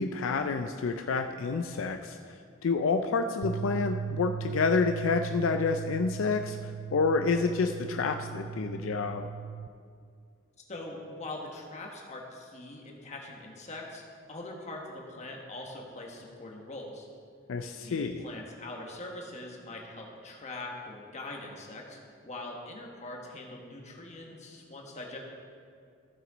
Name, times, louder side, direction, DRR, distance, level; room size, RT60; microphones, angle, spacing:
voice 1, 0.0-2.2 2.6-6.6 6.9-9.3 17.5-18.2, left 4 dB, 75° left, 6 dB, 0.4 m, -28 dB
sound 1, 3.4-9.7, right 8 dB, 70° right, 0.4 m, -38 dB
voice 2, 10.7-14.0 14.3-17.1 17.7-25.2, left 2 dB, 35° left, 0 dB, 1.4 m, -42 dB
15.0 x 6.0 x 4.0 m, 2.2 s
head